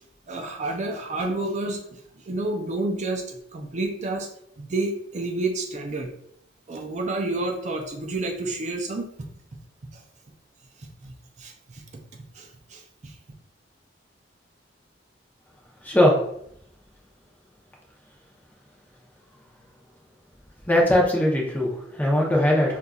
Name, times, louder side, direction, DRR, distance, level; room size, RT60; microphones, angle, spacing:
voice 1, 0.3-4.3 4.6-6.1 6.7-9.3 9.9-10.0 10.8-11.8 12.3-13.1, right 2 dB, 40° right, 2 dB, 0.4 m, -30 dB
voice 2, 15.8-16.2 20.7-22.8, left 1 dB, 10° left, -2 dB, 0.7 m, -20 dB
5.4 x 2.4 x 2.3 m, 0.73 s
head